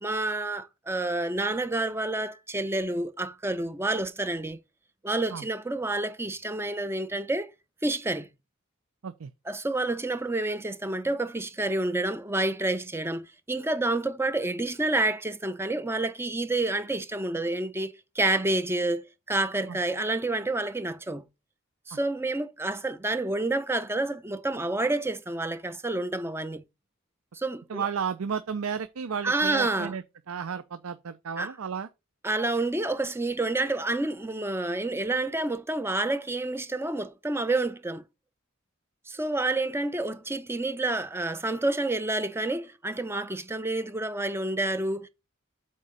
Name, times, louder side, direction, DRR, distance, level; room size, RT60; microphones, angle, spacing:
voice 1, 0.0-4.6 5.0-7.5 7.8-8.3 9.5-21.2 21.9-26.6 27.3-27.9 29.2-29.9 31.4-31.5 32.2-38.0 39.1-45.1, right 2 dB, 10° right, 0.5 m, -29 dB
voice 2, 27.7-31.9, right 6 dB, 85° right, 0.5 m, -33 dB
8.1 x 3.8 x 5.2 m
head